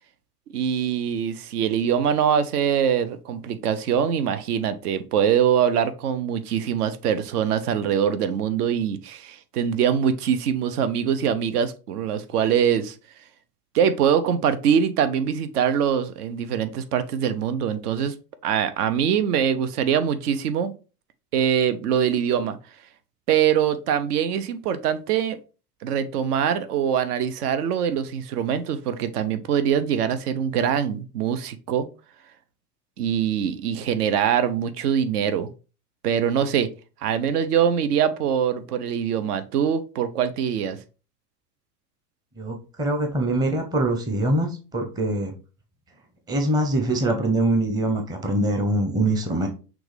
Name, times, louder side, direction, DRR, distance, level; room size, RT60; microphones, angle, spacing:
voice 1, 0.5-12.9 13.7-18.1 18.4-20.7 21.3-22.6 23.3-25.4 25.8-31.9 33.0-35.5 36.0-36.7 37.0-40.8, right 8 dB, 65° right, 0.7 m, -23 dB
voice 2, 42.4-45.3 46.3-49.5, right 1 dB, 10° right, 0.6 m, -23 dB
6.1 x 2.4 x 3.2 m
hypercardioid pair, 90°, 50 cm